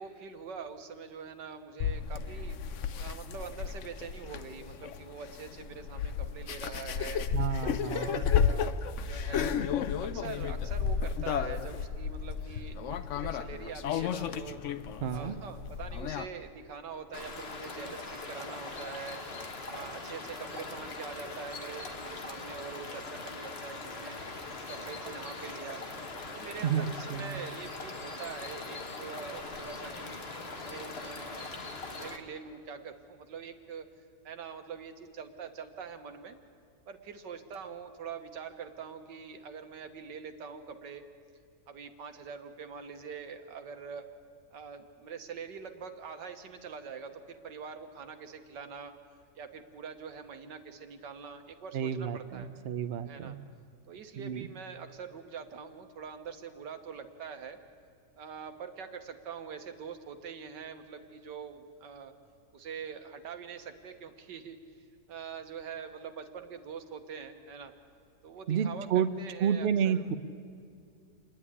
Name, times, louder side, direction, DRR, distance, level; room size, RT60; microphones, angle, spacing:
voice 1, 0.0-2.6 3.0-7.3 7.9-8.8 9.0-9.6 10.0-14.6 15.1-19.2 19.7-24.2 24.7-25.8 26.3-30.2 30.6-33.9 34.2-36.4 36.9-41.0 41.7-44.1 44.5-48.9 49.4-52.5 53.1-53.3 53.9-57.6 58.2-62.1 62.5-64.6 65.1-67.7 68.2-70.0, right 6 dB, 85° right, 7 dB, 1.9 m, -44 dB
sound 1, 1.8-16.3, left 7 dB, 60° left, 0.8 m, -33 dB
voice 2, 7.3-8.2 15.0-15.4 26.6-27.4 51.7-53.4 54.2-54.5 68.5-69.1 69.4-70.1, right 8 dB, 55° right, 11 dB, 0.7 m, -30 dB
sound 2, 17.1-32.2, left 3 dB, 40° left, 1.6 m, -41 dB
27.5 x 10.0 x 9.9 m, 2.3 s
omnidirectional pair, 1.8 m